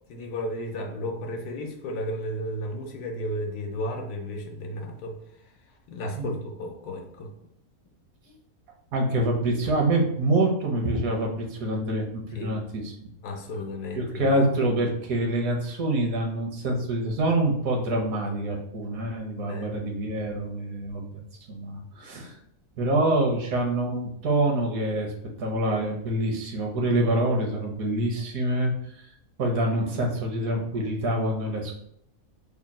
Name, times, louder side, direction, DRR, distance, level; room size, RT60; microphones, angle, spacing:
voice 1, 0.1-5.2 5.9-7.3 12.4-12.6 13.2-14.3 19.5-19.8 22.2-22.3, left 1 dB, 80° left, 3 dB, 1.2 m, -33 dB
voice 2, 8.9-12.9 13.9-21.2 21.5-22.4 22.8-25.1 25.4-29.1 29.4-31.9, right 1 dB, 70° right, 1 dB, 1.2 m, -26 dB
3.5 x 2.2 x 4.0 m, 0.72 s
omnidirectional pair, 1.6 m